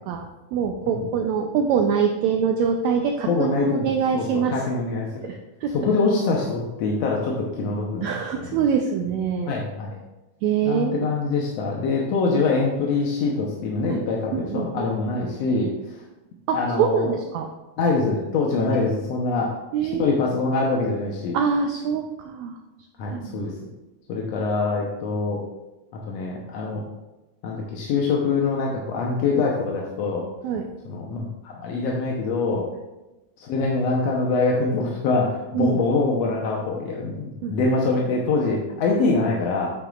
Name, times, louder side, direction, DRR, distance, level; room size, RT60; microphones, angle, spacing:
voice 1, 0.1-4.5 5.2-5.7 8.0-9.5 10.4-11.1 13.9-14.0 14.3-14.9 16.5-17.5 19.7-20.2 21.3-22.6 23.1-23.5 29.3-29.5 30.4-30.7 35.5-35.8 37.4-37.5, right 6 dB, 80° right, 3 dB, 1.6 m, -24 dB
voice 2, 3.3-3.9 4.1-5.3 5.7-8.6 9.5-10.0 10.6-15.7 16.5-17.1 17.8-19.5 20.0-21.3 23.0-23.5 24.1-25.4 26.1-26.8 27.4-30.2 30.9-32.7 33.4-39.7, left 3 dB, 70° left, -2 dB, 1.7 m, -24 dB
9.1 x 7.8 x 2.4 m, 1.0 s
omnidirectional pair, 3.8 m